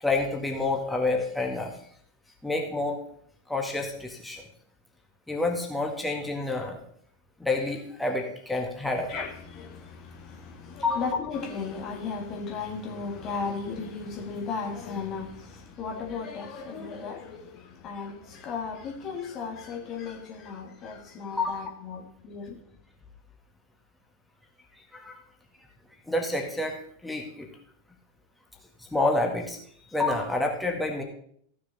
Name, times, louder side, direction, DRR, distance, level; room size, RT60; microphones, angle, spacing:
voice 1, 0.0-1.7 2.4-3.0 3.5-4.4 5.3-6.8 7.4-9.1 10.8-11.0 21.4-21.6 24.9-25.2 26.1-27.5 28.8-29.6 29.9-31.0, left 2 dB, 5° left, 1.8 m, -28 dB
voice 2, 9.1-22.6, left 5 dB, 35° left, 1.6 m, -35 dB
14.5 x 6.6 x 4.1 m
figure-of-eight pair, 90°, 0 cm